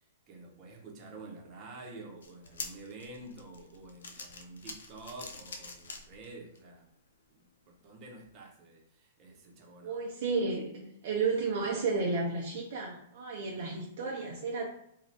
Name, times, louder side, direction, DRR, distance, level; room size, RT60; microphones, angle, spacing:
voice 1, 0.3-6.9 7.3-10.0, right 2 dB, 35° right, 0 dB, 0.8 m, -49 dB
sound 1, 2.2-6.6 7.1-7.2 8.2-8.3, left 4 dB, 70° left, 0.5 m, -45 dB
voice 2, 9.8-14.7, right 4 dB, 60° right, -2 dB, 0.6 m, -32 dB
2.6 x 2.3 x 3.3 m, 0.77 s
hypercardioid pair, 110°, 0 cm